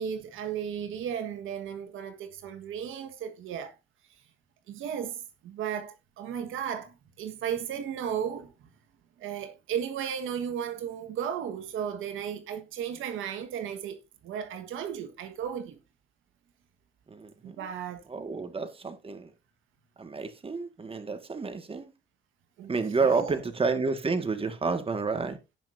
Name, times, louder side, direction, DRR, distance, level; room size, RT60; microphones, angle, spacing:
voice 1, 0.0-3.7 4.7-8.7 9.2-15.8 17.4-18.0 22.6-22.7 23.0-23.4, right 8 dB, 85° right, 1.7 m, -35 dB
voice 2, 17.1-17.7 18.1-19.3 20.0-21.9 22.7-25.4, right 4 dB, 30° right, 1.9 m, -30 dB
17.5 x 5.9 x 2.7 m
cardioid pair, 90°, 20 cm